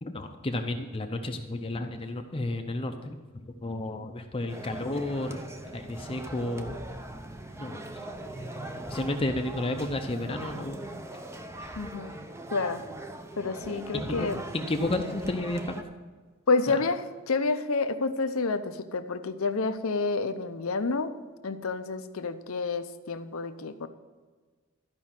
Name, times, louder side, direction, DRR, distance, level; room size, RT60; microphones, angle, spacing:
voice 1, 0.0-5.4 5.7-6.8 7.6-7.8 8.9-10.8 11.6-11.7 13.9-14.3 14.5-15.9 16.7-16.8, left 2 dB, 25° left, 4 dB, 0.6 m, -32 dB
sound 1, 4.5-15.8, right 1 dB, 15° right, 0.7 m, -40 dB
voice 2, 11.8-12.2 12.5-12.9 13.4-14.4 16.5-21.1 21.4-23.9, left 3 dB, 85° left, 10 dB, 0.7 m, -29 dB
13.0 x 5.3 x 7.4 m, 1.4 s
head